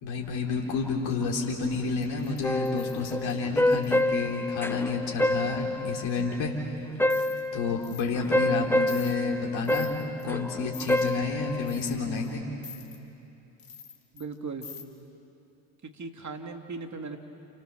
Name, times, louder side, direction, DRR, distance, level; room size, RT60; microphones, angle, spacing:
voice 1, 0.0-6.5 7.5-9.9 10.2-12.4, left 4 dB, 70° left, -1 dB, 3.6 m, -30 dB
sound 1, 1.9-4.0 7.1-7.5 7.8-8.1 8.4-8.5 8.9-9.1 9.6-10.2 10.7-11.1 11.6-12.3 12.6-13.0 13.6-14.3 14.6-14.8, left 6 dB, 45° left, 3.4 m, -46 dB
sound 2, 2.4-6.5 7.0-11.8, left 1 dB, 5° left, 1.2 m, -28 dB
voice 2, 14.1-14.7 15.9-17.2, right 4 dB, 35° right, 4 dB, 2.9 m, -37 dB
29.5 x 28.5 x 7.0 m, 3.0 s
hypercardioid pair, 60°, 49 cm